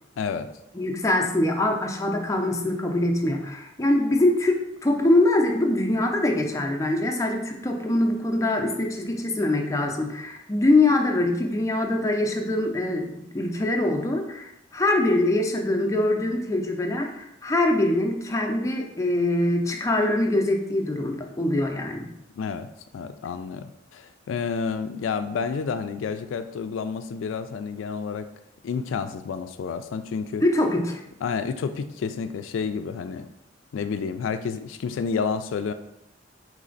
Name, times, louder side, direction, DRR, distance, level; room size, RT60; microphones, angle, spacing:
voice 1, 0.2-0.5 22.4-22.7 22.9-28.3 28.6-30.4 31.2-33.3 33.7-35.7, left 5 dB, 85° left, 10 dB, 0.3 m, -30 dB
voice 2, 0.7-22.1 30.4-31.0, left 1 dB, 15° left, 2 dB, 0.5 m, -23 dB
4.2 x 3.2 x 3.8 m, 0.83 s
head